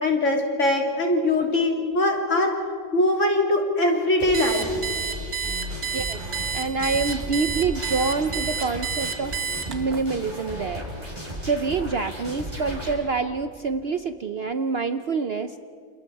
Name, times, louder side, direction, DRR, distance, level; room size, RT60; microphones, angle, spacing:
voice 1, 0.0-2.6 2.9-4.8, left 1 dB, 50° left, 1 dB, 3.4 m, -22 dB
sound 1, 4.2-12.9, equal, 25° right, 5.7 m, -35 dB
Alarm, 4.3-10.0, right 6 dB, 70° right, 2.0 m, -29 dB
voice 2, 6.5-9.3 9.7-10.9 11.5-15.6, right 4 dB, 50° right, 9 dB, 0.8 m, -26 dB
29.5 x 28.5 x 4.7 m, 2.3 s
omnidirectional pair, 1.6 m